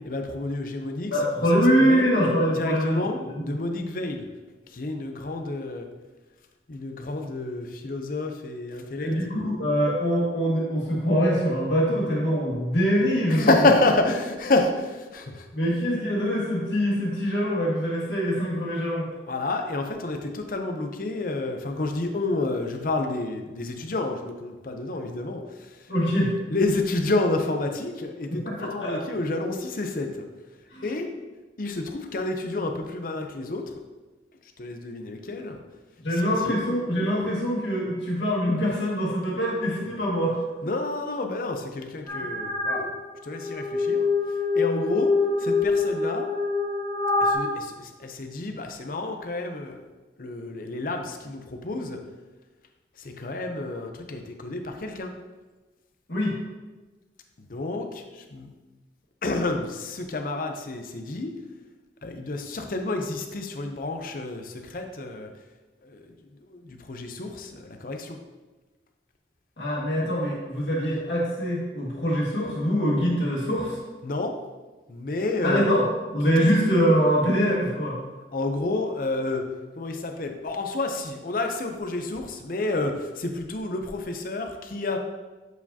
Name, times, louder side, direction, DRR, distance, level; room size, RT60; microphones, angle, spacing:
voice 1, 0.0-1.2 1.5-2.1 2.5-3.2 3.4-4.3 4.7-5.9 6.7-9.1 13.3-15.5 19.3-30.2 30.8-31.1 31.6-33.7 34.4-35.6 36.1-36.6 40.6-43.0 43.2-46.3 47.2-49.8 50.2-52.0 53.0-55.1 57.4-58.5 59.2-61.3 62.0-65.3 65.8-68.2 74.0-74.3 74.9-75.7 76.4-76.5 78.3-79.5 79.8-85.0, left 2 dB, 50° left, 5 dB, 0.6 m, -29 dB
voice 2, 1.1-3.5 9.0-13.5 15.5-19.1 25.9-26.4 28.3-29.0 30.7-30.8 36.0-40.4 56.1-56.4 69.6-73.8 75.4-75.9 76.1-78.0, equal, 80° left, -4 dB, 1.9 m, -24 dB
sound 1, 42.1-42.8 43.3-47.3, left 3 dB, 15° left, 1.3 m, -25 dB
8.0 x 4.7 x 2.8 m, 1.2 s
head